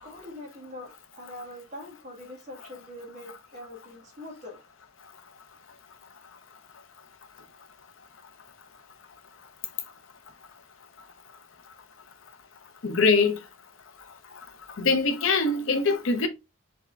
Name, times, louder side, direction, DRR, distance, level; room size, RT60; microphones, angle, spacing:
voice 1, 0.0-4.6, left 1 dB, 35° right, 1.4 m, -43 dB
voice 2, 12.8-13.4 14.8-16.3, left 4 dB, 75° left, 0.7 m, -23 dB
3.6 x 3.5 x 3.1 m
head